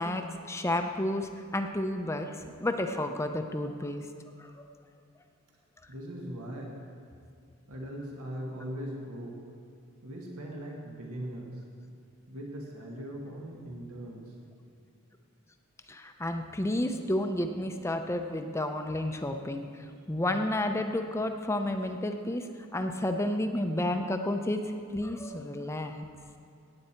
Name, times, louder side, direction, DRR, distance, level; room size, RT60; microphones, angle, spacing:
voice 1, 0.0-4.1 4.4-4.5 15.9-24.6 24.9-26.0, left 1 dB, 10° left, 6 dB, 0.5 m, -31 dB
voice 2, 5.9-6.8 7.7-9.4 10.0-11.6 12.3-14.3, equal, 85° right, -1 dB, 1.8 m, -40 dB
17.5 x 8.6 x 4.4 m, 2.4 s
head